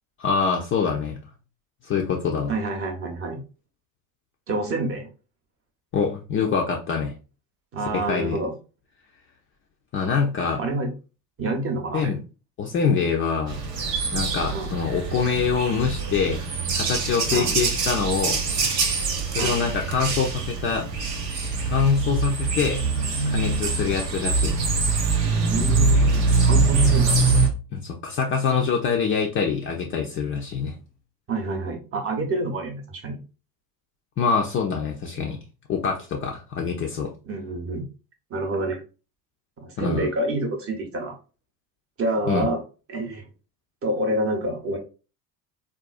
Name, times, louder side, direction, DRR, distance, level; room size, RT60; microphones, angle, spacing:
voice 1, 0.2-1.2 1.8-2.6 5.9-7.1 7.9-8.4 9.9-10.6 11.9-12.2 12.6-13.6 14.1-16.4 16.8-18.4 19.3-20.9 21.7-22.8 23.3-24.7 27.7-30.8 34.2-35.4 35.7-37.1 39.8-40.1 42.3-42.5, left 6 dB, 25° left, 1 dB, 0.4 m, -25 dB
voice 2, 2.5-3.4 4.5-5.1 7.7-8.5 10.6-10.9 11.4-12.1 14.5-14.8 17.3-17.6 19.4-19.6 25.5-26.1 26.4-27.2 31.3-33.2 37.2-37.8 38.3-38.8 39.6-41.2 42.0-42.6 42.9-43.3 43.8-44.8, right 1 dB, 30° right, 4 dB, 0.8 m, -27 dB
sound 1, 13.5-27.5, right 4 dB, 85° right, 0.6 m, -23 dB
3.6 x 2.3 x 2.4 m, 0.33 s
figure-of-eight pair, 60°, 48 cm